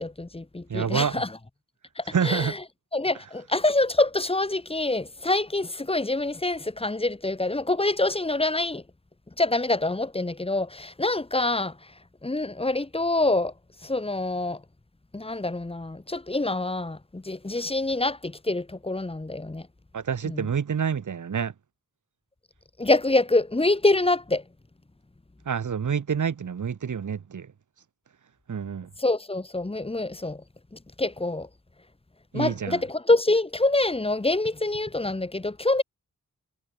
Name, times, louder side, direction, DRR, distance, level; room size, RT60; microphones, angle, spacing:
voice 1, 0.0-1.4 2.0-2.6 2.9-8.8 9.4-11.9 12.2-13.5 13.8-14.6 15.1-19.7 20.2-20.5 22.8-24.4 29.0-30.4 30.7-31.5 32.3-35.8, left 2 dB, 20° left, 7.9 m, -26 dB
voice 2, 0.7-1.2 2.1-2.5 19.9-21.5 25.5-27.5 28.5-28.9 32.3-32.8, right 7 dB, 70° right, 7.4 m, -27 dB
wide cardioid pair, 155°, 31 cm